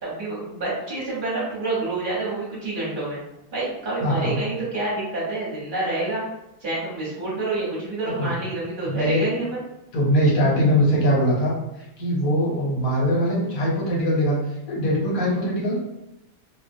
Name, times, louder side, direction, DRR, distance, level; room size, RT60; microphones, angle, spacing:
voice 1, 0.0-3.2 3.5-6.2 6.6-9.6, right 2 dB, 40° right, -7 dB, 1.0 m, -27 dB
voice 2, 4.0-4.4 8.2-8.3 8.9-9.3 9.9-11.5 12.0-14.4 14.7-15.8, equal, 65° left, -4 dB, 1.2 m, -21 dB
2.5 x 2.2 x 2.6 m, 0.87 s
omnidirectional pair, 1.6 m